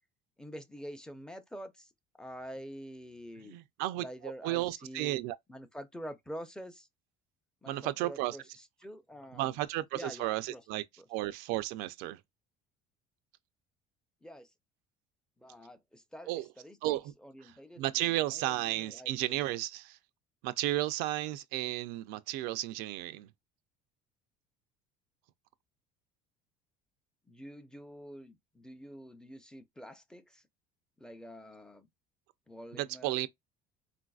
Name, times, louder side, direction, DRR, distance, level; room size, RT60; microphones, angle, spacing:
voice 1, 0.4-1.9 2.2-3.6 4.0-5.2 5.5-6.9 7.6-8.4 8.8-9.6 9.9-10.6 14.2-14.5 15.4-19.4 27.3-30.4 31.0-31.9 32.5-33.2, equal, 5° left, 0.6 m, -47 dB
voice 2, 3.4-5.4 7.7-8.4 9.3-10.8 11.1-12.2 16.3-16.5 16.8-17.1 17.4-20.0 20.4-23.3 32.7-33.3, right 16 dB, 80° right, 0.4 m, -33 dB
3.9 x 2.5 x 2.3 m
cardioid pair, 115°, 16 cm